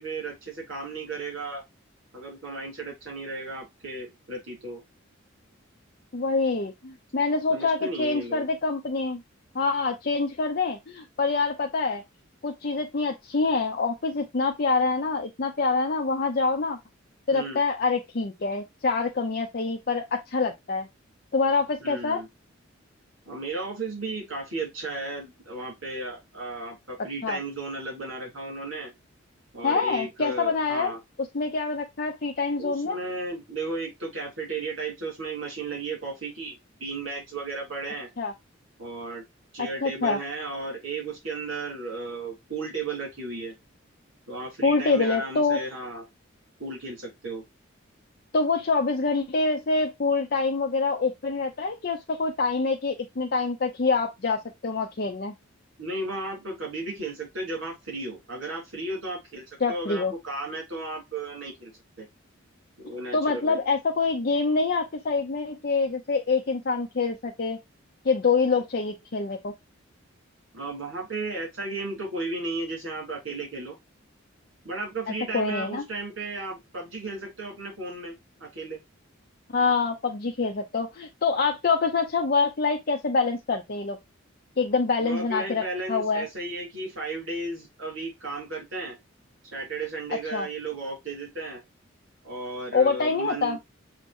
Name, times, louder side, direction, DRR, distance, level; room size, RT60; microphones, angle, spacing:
voice 1, 0.0-1.6 2.1-4.8 7.5-8.4 17.3-17.6 21.8-22.3 23.2-28.9 29.5-31.0 32.6-38.1 38.8-39.2 39.5-43.5 44.3-46.0 46.6-47.4 55.8-61.7 62.0-62.1 62.8-63.6 70.5-73.7 74.6-78.1 78.4-78.8 85.0-89.0 89.4-91.6 92.2-93.6, right 2 dB, 75° right, 3.1 m, -34 dB
voice 2, 6.1-9.2 9.5-12.0 12.4-16.8 17.3-20.9 21.3-22.2 27.2-27.4 29.6-30.9 31.2-33.0 38.2-38.3 39.6-40.2 44.6-45.6 48.3-55.3 59.6-60.1 63.1-67.6 68.0-69.5 75.3-75.8 79.5-84.0 84.6-85.6 85.9-86.3 90.1-90.5 92.7-93.6, left 4 dB, 50° left, 0.6 m, -26 dB
7.1 x 2.9 x 2.6 m
head